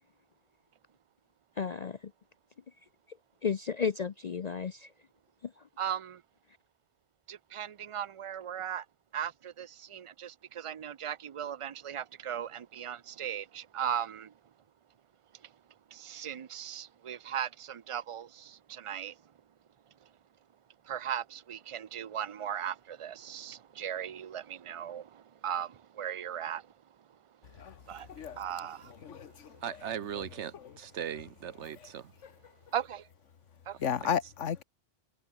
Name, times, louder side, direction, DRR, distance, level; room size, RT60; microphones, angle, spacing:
voice 1, 1.6-2.1 3.4-4.9 5.4-5.6, left 6 dB, 45° left, 0.6 m, -33 dB
voice 2, 5.8-6.2 7.3-8.8 9.1-14.3 15.9-19.1 20.9-26.7 27.9-28.1 28.3-28.9 32.7-33.1 33.7-33.8, right 9 dB, 50° right, 0.3 m, -37 dB
voice 3, 27.5-28.4 28.9-29.6 30.1-30.2 30.5-30.7 32.2-32.3 33.8-34.6, left 8 dB, 85° left, 1.4 m, -35 dB
voice 4, 29.6-32.1, right 9 dB, 70° right, 1.1 m, -38 dB
omnidirectional pair, 1.2 m